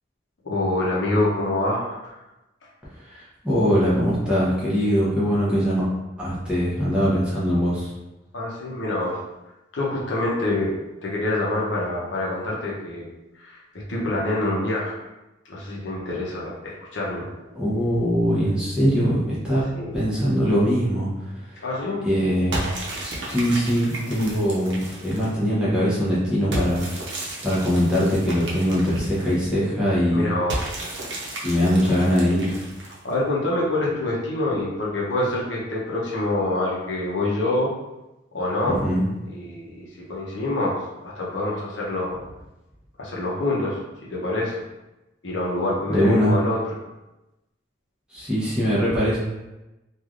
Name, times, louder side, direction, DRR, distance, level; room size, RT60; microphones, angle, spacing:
voice 1, 0.4-2.2 8.3-9.2 9.7-10.7 11.0-13.1 13.4-13.6 13.9-15.0 15.5-17.3 19.7-20.0 21.6-22.0 30.1-30.6 33.0-37.7 38.3-38.8 39.3-42.2 43.0-43.8 44.1-44.6 45.2-46.6, left 2 dB, 70° left, -4 dB, 0.7 m, -26 dB
voice 2, 3.0-5.9 6.2-7.9 17.5-19.6 19.9-21.6 22.0-22.7 23.0-26.9 27.4-30.3 31.4-32.6 38.6-39.0 45.9-46.3 48.1-49.2, equal, 5° right, -9 dB, 0.7 m, -22 dB
sound 1, 22.5-25.4 26.5-29.5 30.5-33.1, right 1 dB, 65° right, 0.7 m, -33 dB
3.1 x 2.3 x 2.4 m, 1.0 s
head